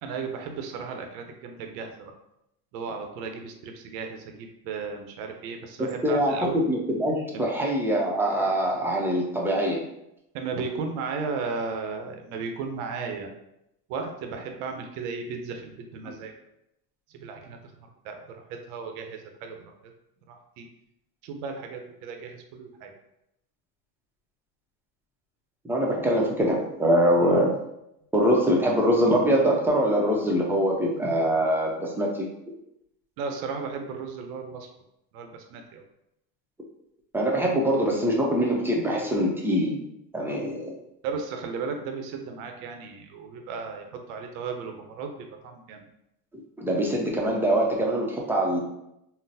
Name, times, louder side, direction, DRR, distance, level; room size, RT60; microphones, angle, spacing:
voice 1, 0.0-2.1 2.7-6.6 7.3-7.5 10.3-13.3 13.9-16.3 17.2-18.2 18.7-19.6 19.8-19.9 20.3-20.7 21.2-22.9 33.2-34.7 35.1-35.8 41.0-45.8, right 5 dB, 85° right, 4 dB, 0.7 m, -35 dB
voice 2, 6.0-9.8 16.1-16.2 25.6-27.6 28.1-32.3 37.1-39.8 40.1-40.7 46.6-48.6, equal, 5° right, -2 dB, 0.5 m, -23 dB
3.8 x 2.0 x 2.6 m, 0.82 s
supercardioid pair, 110°, 41 cm